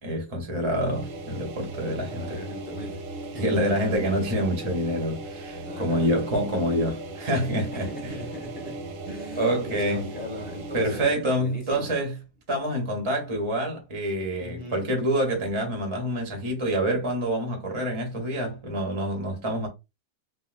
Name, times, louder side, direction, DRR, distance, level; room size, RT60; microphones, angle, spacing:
voice 1, 0.0-2.4 3.4-8.1 9.4-10.1 10.7-12.2 12.5-19.7, right 1 dB, 35° right, 0.5 m, -27 dB
sound 1, 0.7-11.2, right 2 dB, 65° right, 0.8 m, -38 dB
voice 2, 2.1-3.6 5.5-6.1 7.7-8.8 9.1-11.9 14.4-14.9, left 1 dB, 10° left, 0.6 m, -39 dB
3.6 x 2.2 x 2.4 m
omnidirectional pair, 1.9 m